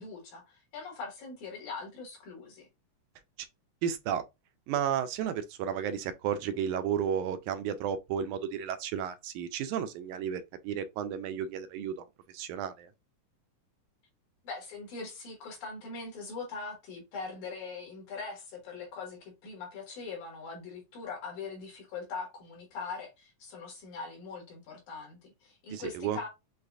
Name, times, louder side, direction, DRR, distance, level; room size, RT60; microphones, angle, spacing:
voice 1, 0.0-2.7 14.4-26.3, left 4 dB, 70° left, 3.0 m, -41 dB
voice 2, 3.8-4.2 4.7-12.1 12.3-12.9 25.7-26.2, right 8 dB, 80° right, 1.9 m, -33 dB
6.5 x 2.4 x 2.4 m
omnidirectional pair, 3.7 m